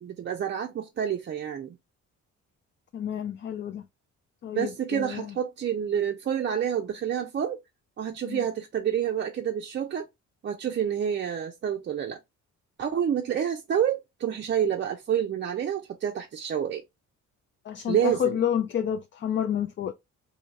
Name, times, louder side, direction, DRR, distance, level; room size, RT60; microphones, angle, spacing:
voice 1, 0.0-1.8 4.5-7.6 8.0-10.1 10.4-12.2 12.8-16.8 17.9-18.4, right 9 dB, 40° right, 0.5 m, -28 dB
voice 2, 2.9-3.8 4.4-5.3 8.2-8.4 17.7-19.9, left 9 dB, 40° left, 0.4 m, -29 dB
3.1 x 2.7 x 2.5 m
cardioid pair, 90°, 30 cm